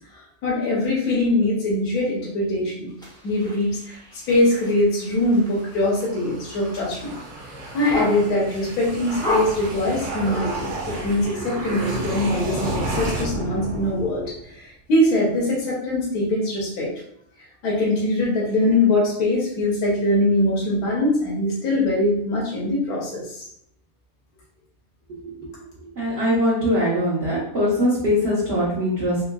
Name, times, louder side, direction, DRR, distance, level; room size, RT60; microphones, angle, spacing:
voice 1, 0.1-2.9 3.2-7.2 7.7-16.9 17.6-23.5, left 1 dB, 85° left, -5 dB, 1.4 m, -22 dB
sound 1, 3.0-8.6 9.1-10.6, left 1 dB, 5° left, 0.4 m, -32 dB
sound 2, 5.1-14.5, right 1 dB, 90° right, 1.3 m, -32 dB
voice 2, 25.9-29.2, equal, 50° right, -9 dB, 1.1 m, -22 dB
3.7 x 2.8 x 2.3 m, 0.71 s
omnidirectional pair, 1.6 m